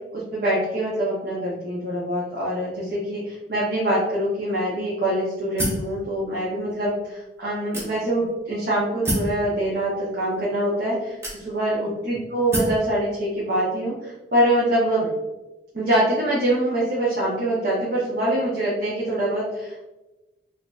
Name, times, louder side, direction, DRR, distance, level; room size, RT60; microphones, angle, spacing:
voice 1, 0.1-15.1 15.7-19.9, right 1 dB, 50° right, -7 dB, 0.8 m, -24 dB
sound 1, 5.6-5.9 6.7-6.8 7.7-8.3 9.0-9.4 10.3-10.4 11.2-11.8 12.5-12.8, equal, 15° right, 0.7 m, -26 dB
4.2 x 2.5 x 2.4 m, 1.1 s
head